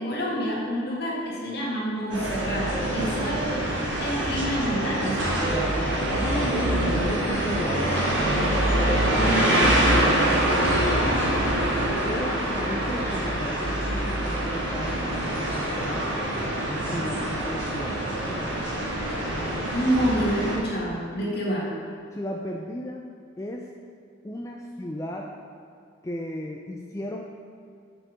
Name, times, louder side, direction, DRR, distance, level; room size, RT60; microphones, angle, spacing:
voice 1, 0.0-3.5 4.0-5.6 9.1-9.6 19.7-21.7, right 1 dB, 55° left, -4 dB, 2.0 m, -28 dB
sound 1, 2.1-20.6, right 1 dB, 65° right, 1.7 m, -25 dB
voice 2, 6.2-8.3 8.8-11.6 12.0-15.0 15.3-18.5 22.1-23.0 23.4-23.7 24.2-25.3 26.0-27.3, left 1 dB, 15° left, 0 dB, 0.4 m, -35 dB
6.7 x 6.2 x 5.1 m, 2.4 s
head